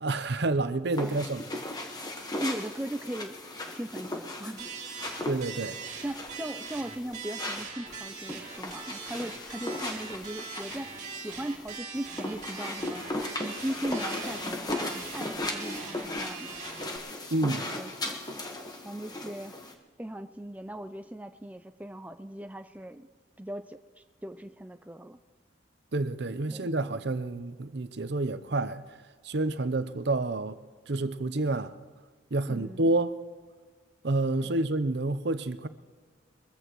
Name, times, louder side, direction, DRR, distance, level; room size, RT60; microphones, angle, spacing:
voice 1, 0.0-1.4 5.3-5.8 17.3-17.7 25.9-28.8 29.2-30.6 30.9-31.7 32.3-33.2 34.0-35.7, right 2 dB, 65° right, 0.7 m, -29 dB
sound 1, 0.9-19.7, left 2 dB, 20° left, 1.3 m, -37 dB
voice 2, 1.0-1.3 2.4-3.4 3.7-4.7 6.0-10.9 11.2-16.6 17.4-18.2 18.8-19.6 20.0-23.1 23.4-23.8 24.2-25.2 26.5-26.7 32.5-32.9 34.4-34.6, right 1 dB, 10° right, 0.4 m, -38 dB
sound 2, 4.6-17.0, right 5 dB, 40° right, 2.4 m, -42 dB
23.0 x 14.5 x 3.1 m
head